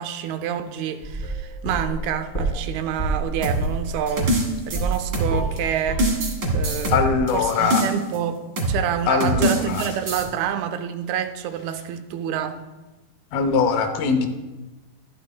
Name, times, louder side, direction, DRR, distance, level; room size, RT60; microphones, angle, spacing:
voice 1, 0.0-6.2 6.5-7.0 7.3-8.4 8.7-12.6, right 9 dB, 85° right, 8 dB, 2.5 m, -28 dB
sound 1, 1.0-2.6 3.0-5.0 5.3-6.8 7.1-7.2, right 3 dB, 45° left, 0.6 m, -28 dB
sound 2, 3.4-5.6 6.0-8.2 8.6-8.8 9.2-10.2, right 1 dB, 50° right, 1.4 m, -24 dB
voice 2, 6.9-7.8 9.1-9.8 13.3-14.3, left 5 dB, 80° left, 6 dB, 2.5 m, -21 dB
12.0 x 11.0 x 2.2 m, 1.1 s
omnidirectional pair, 4.5 m